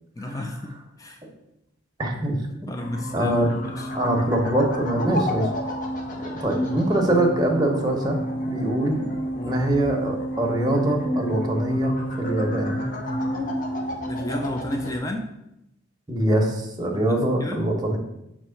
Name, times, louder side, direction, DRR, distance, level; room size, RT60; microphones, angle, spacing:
voice 1, 0.2-1.2 2.7-3.9 9.3-9.6 14.1-15.3 17.1-17.6, left 1 dB, 15° left, 3 dB, 0.4 m, -32 dB
voice 2, 2.0-2.4 2.6-2.7 3.1-3.5 3.9-5.5 6.2-8.2 8.5-9.1 9.5-12.8 16.1-18.0, right 1 dB, 20° right, 0 dB, 0.9 m, -23 dB
sound 1, 2.8-15.0, equal, 40° left, 0.8 m, -30 dB
6.0 x 3.0 x 5.6 m, 0.86 s
head